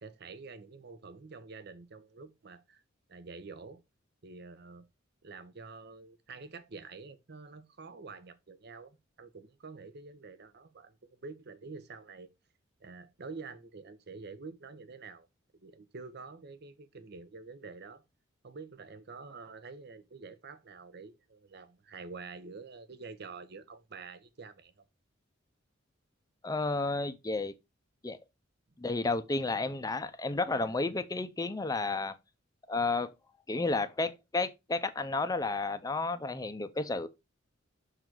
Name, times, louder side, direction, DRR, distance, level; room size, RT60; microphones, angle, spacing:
voice 1, 0.0-2.8 3.1-3.8 4.2-4.9 5.2-11.0 11.2-12.3 12.8-15.3 15.6-18.0 18.4-24.7, right 4 dB, 55° right, 0.7 m, -47 dB
voice 2, 26.4-27.5 28.0-28.2 28.8-32.1 32.7-33.1 33.5-37.1, left 3 dB, 20° left, 0.5 m, -32 dB
6.4 x 3.9 x 4.5 m
head